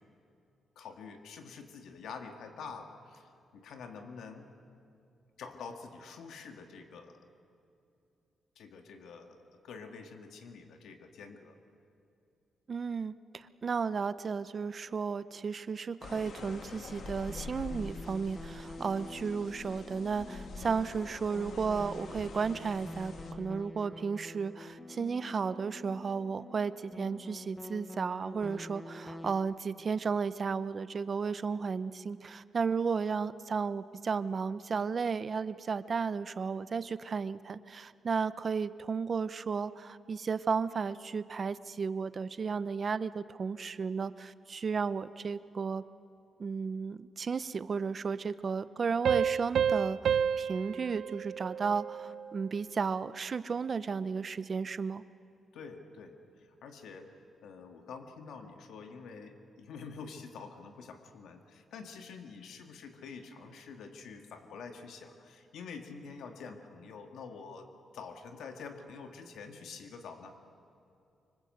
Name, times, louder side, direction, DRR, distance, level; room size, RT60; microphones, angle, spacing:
voice 1, 0.8-4.5 5.4-7.1 8.6-11.6 55.5-57.1 57.4-67.7 67.9-70.4, left 5 dB, 85° left, 5 dB, 2.3 m, -47 dB
voice 2, 12.7-45.8 46.4-55.0, right 5 dB, 35° right, 14 dB, 0.7 m, -34 dB
sound 1, 16.0-23.3, left 3 dB, 55° left, 1.8 m, -46 dB
sound 2, 17.3-29.3, left 1 dB, 10° left, 1.2 m, -47 dB
sound 3, 49.0-52.3, right 8 dB, 70° right, 0.6 m, -30 dB
25.5 x 25.0 x 8.0 m, 2.7 s
wide cardioid pair, 165°, 0 cm